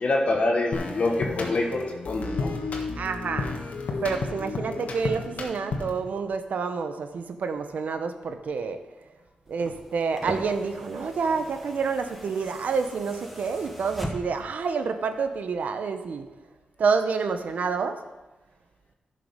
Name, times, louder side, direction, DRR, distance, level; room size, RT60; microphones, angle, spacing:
voice 1, 0.0-2.5, left 2 dB, 50° left, 1 dB, 1.4 m, -25 dB
sound 1, 0.7-6.1, left 3 dB, 70° left, 1.6 m, -32 dB
voice 2, 3.0-3.5 4.0-8.8 9.5-16.2 16.8-18.0, right 5 dB, 75° right, 8 dB, 0.8 m, -28 dB
sound 2, 9.5-14.6 15.8-15.9, equal, ahead, 1.3 m, -39 dB
11.5 x 6.7 x 5.2 m, 1.1 s
wide cardioid pair, 100°, 3 cm